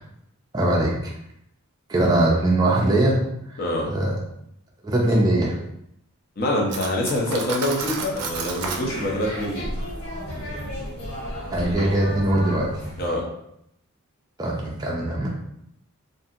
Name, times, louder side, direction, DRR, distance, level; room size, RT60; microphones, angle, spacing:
voice 1, 0.5-1.1 1.9-3.3 3.9-4.2 4.8-5.6 11.5-12.7 14.4-15.3, right 1 dB, 15° right, -3 dB, 0.3 m, -21 dB
voice 2, 3.6-3.9 6.4-9.7 13.0-13.2, left 1 dB, 40° left, -1 dB, 0.6 m, -25 dB
Cutlery silverware, 6.7-8.9, right 4 dB, 80° right, 0.4 m, -31 dB
sound 1, 7.7-13.1, equal, 80° left, 1.2 m, -33 dB
2.7 x 2.5 x 2.4 m, 0.77 s
head